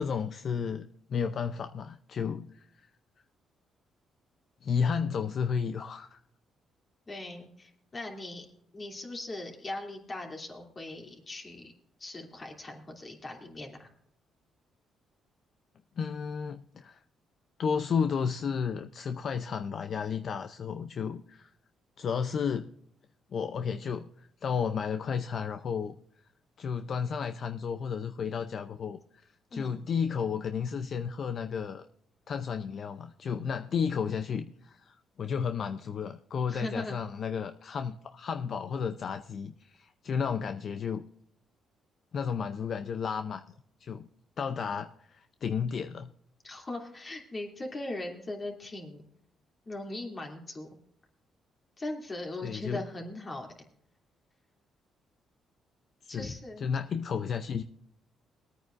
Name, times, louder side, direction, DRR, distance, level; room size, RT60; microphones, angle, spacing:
voice 1, 0.0-2.7 4.6-6.2 16.0-17.0 17.6-21.5 22.0-22.7 23.3-26.0 26.6-31.9 32.3-41.0 42.1-43.4 43.8-44.1 44.4-46.1 52.4-52.8 56.0-57.6, left 6 dB, 55° left, 9 dB, 0.5 m, -32 dB
voice 2, 7.1-8.5 8.7-11.7 12.0-13.9 29.5-29.8 36.5-37.0 46.4-49.0 49.6-50.7 51.8-53.5 56.1-56.7, left 2 dB, 30° left, 1 dB, 2.8 m, -39 dB
22.5 x 9.2 x 2.5 m, 0.70 s
cardioid pair, 90°, 0 cm